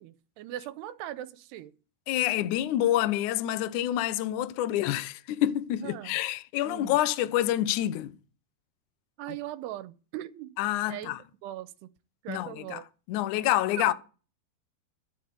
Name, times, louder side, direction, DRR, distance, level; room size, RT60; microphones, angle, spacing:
voice 1, 0.0-1.7 5.8-6.2 6.6-7.0 9.2-10.5 10.9-11.2 11.4-11.9 12.2-12.8 13.8-13.9, right 13 dB, 80° right, 2.8 m, -39 dB
voice 2, 2.1-8.1 10.6-11.2 12.3-12.8 13.1-13.9, left 13 dB, 85° left, 1.7 m, -27 dB
12.5 x 7.3 x 8.1 m
omnidirectional pair, 4.9 m